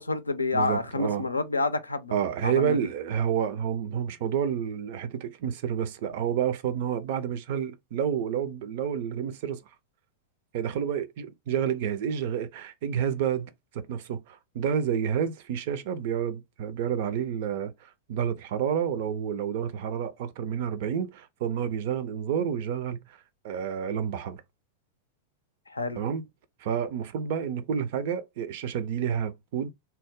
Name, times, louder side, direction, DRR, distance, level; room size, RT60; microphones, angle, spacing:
voice 1, 0.0-2.1 2.4-2.8 25.7-26.0, left 3 dB, 80° left, 0.4 m, -28 dB
voice 2, 0.5-1.3 2.1-9.6 10.5-17.7 18.1-23.2 23.4-24.4 26.0-26.2 26.6-29.7, right 8 dB, 50° right, 0.5 m, -29 dB
2.8 x 2.0 x 3.5 m
figure-of-eight pair, 90°, 0 cm